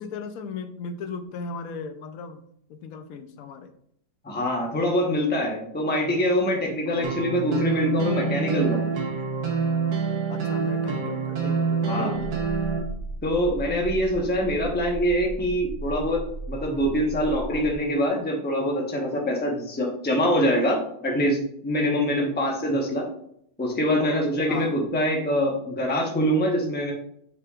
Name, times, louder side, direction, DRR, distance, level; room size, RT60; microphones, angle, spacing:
voice 1, 0.0-2.4 2.7-3.7 6.9-7.2 10.3-12.3 24.5-24.8, left 5 dB, 65° left, 8 dB, 0.9 m, -36 dB
voice 2, 4.2-8.9 11.8-12.1 13.2-16.2 16.5-23.1 23.6-26.9, equal, 10° left, -1 dB, 0.8 m, -24 dB
sound 1, 7.0-12.8, right 5 dB, 70° right, 1.6 m, -26 dB
sound 2, 12.1-17.7, right 1 dB, 40° left, 1.7 m, -36 dB
7.0 x 5.6 x 2.4 m, 0.70 s
omnidirectional pair, 2.0 m